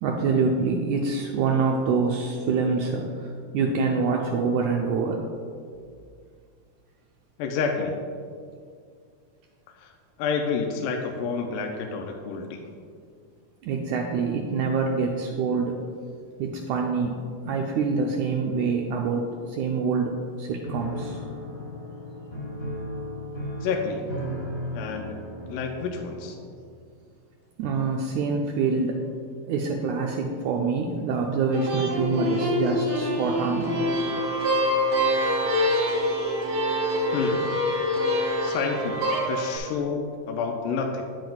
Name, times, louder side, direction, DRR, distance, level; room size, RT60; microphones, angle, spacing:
voice 1, 0.0-5.2 13.6-15.8 16.4-21.2 27.6-29.0 29.4-35.4, right 4 dB, 85° right, 1 dB, 1.7 m, -26 dB
voice 2, 7.4-8.0 9.8-9.9 10.2-12.7 23.6-24.0 24.7-25.2 25.5-26.4 37.1-37.5 38.4-41.0, left 5 dB, 80° left, 2 dB, 2.1 m, -29 dB
Piano, 20.6-26.6, equal, 35° left, 1.4 m, -35 dB
sound 1, 31.5-39.6, left 1 dB, 65° right, 2.1 m, -25 dB
8.9 x 7.6 x 2.3 m, 2.2 s
omnidirectional pair, 3.9 m